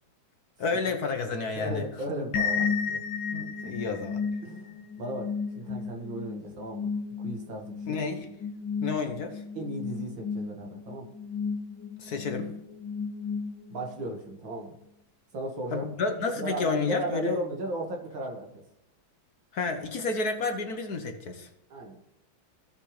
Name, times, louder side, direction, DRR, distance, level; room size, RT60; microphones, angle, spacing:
voice 1, 0.6-1.8 3.3-4.2 7.9-8.3 8.8-9.4 12.0-12.5 15.7-17.4 19.5-21.5, left 4 dB, 55° left, 5 dB, 1.4 m, -30 dB
voice 2, 1.5-3.0 3.6-3.7 4.4-6.9 7.2-8.0 9.5-11.1 13.7-14.8 15.3-15.9 16.4-18.6 21.7-22.0, right 1 dB, 70° right, 1 dB, 2.6 m, -35 dB
sound 1, 2.3-14.0, left 5 dB, 70° left, 1.7 m, -33 dB
17.0 x 6.2 x 3.3 m, 0.86 s
omnidirectional pair, 2.2 m